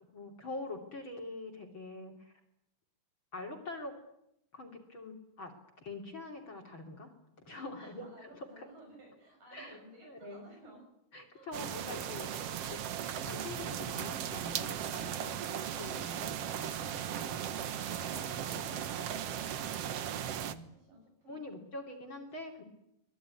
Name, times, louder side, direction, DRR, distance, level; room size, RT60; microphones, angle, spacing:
voice 1, 0.1-2.3 3.3-3.9 4.5-7.1 7.4-8.7 9.5-10.5 11.1-12.3 12.7-12.8 13.2-15.3 15.8-17.3 18.5-18.9 20.4-20.7 21.3-22.6, left 2 dB, 35° left, 2 dB, 3.3 m, -45 dB
voice 2, 7.6-10.9 11.3-11.6 15.0-15.5 17.1-21.5, right 1 dB, 60° right, 0 dB, 8.2 m, -57 dB
sound 1, 11.5-20.5, right 9 dB, 75° right, 1.4 m, -37 dB
24.5 x 22.0 x 9.7 m, 0.81 s
omnidirectional pair, 4.4 m